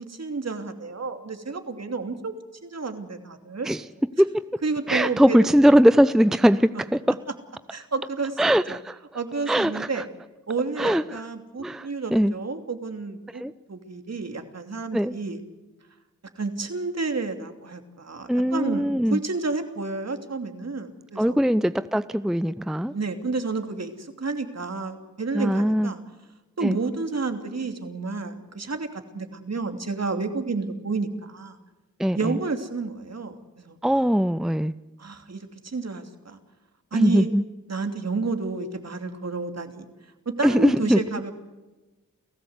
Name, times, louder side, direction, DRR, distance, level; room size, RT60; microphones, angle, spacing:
voice 1, 0.0-2.3 2.6-3.7 4.6-5.5 7.7-8.8 9.1-10.0 10.5-13.4 13.7-15.4 16.4-21.4 22.9-26.0 26.6-31.6 32.1-33.8 35.0-36.4 36.9-37.3 37.7-39.9 40.3-41.3, right 4 dB, 50° right, 6 dB, 2.9 m, -30 dB
voice 2, 4.9-7.2 8.4-9.0 9.5-10.0 10.8-11.2 11.6-12.3 13.3-13.5 14.9-15.1 18.3-19.2 21.2-22.9 25.3-25.9 26.6-26.8 32.0-32.3 33.8-34.7 36.9-37.4 40.4-41.0, equal, ahead, 15 dB, 0.6 m, -21 dB
30.0 x 14.5 x 8.1 m, 1.1 s
cardioid pair, 40°, 32 cm